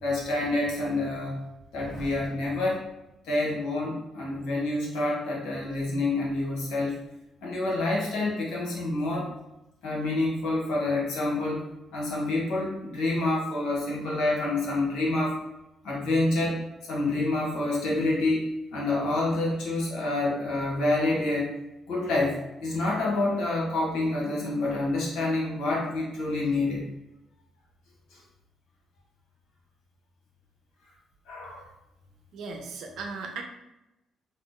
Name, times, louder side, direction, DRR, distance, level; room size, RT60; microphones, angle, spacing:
voice 1, 0.0-1.4 1.7-2.8 3.2-6.9 7.4-9.3 9.8-11.7 11.9-15.4 15.8-21.5 21.9-26.8 31.3-31.7, left 2 dB, 90° left, -3 dB, 1.0 m, -27 dB
voice 2, 32.3-33.4, right 4 dB, 75° right, 2 dB, 0.5 m, -37 dB
2.8 x 2.0 x 3.6 m, 0.94 s
cardioid pair, 90°, 0 cm